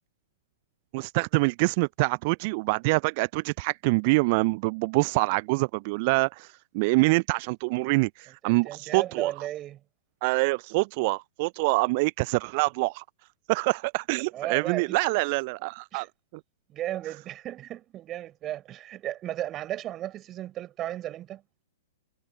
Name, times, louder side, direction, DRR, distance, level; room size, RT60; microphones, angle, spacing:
voice 1, 0.9-9.3 10.2-13.0 13.5-16.1, right 27 dB, 45° right, 0.4 m, -25 dB
voice 2, 8.4-9.8 14.3-15.0 15.9-16.1 16.7-21.4, right 13 dB, 30° right, 5.3 m, -35 dB
figure-of-eight pair, 105°, 0 cm